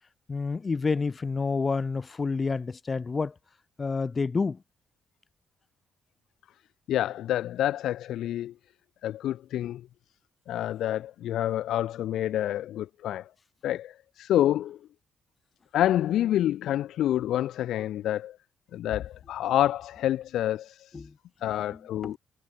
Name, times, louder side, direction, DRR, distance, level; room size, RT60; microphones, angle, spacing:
voice 1, 0.3-3.3 3.8-4.6 20.9-21.1 22.0-22.2, left 4 dB, 30° left, 1.0 m, -28 dB
voice 2, 6.9-8.5 9.0-9.9 10.5-13.3 13.6-14.8 15.7-18.4 18.7-21.1 21.4-22.2, left 12 dB, 80° left, 0.6 m, -28 dB
cardioid pair, 90°, 0 cm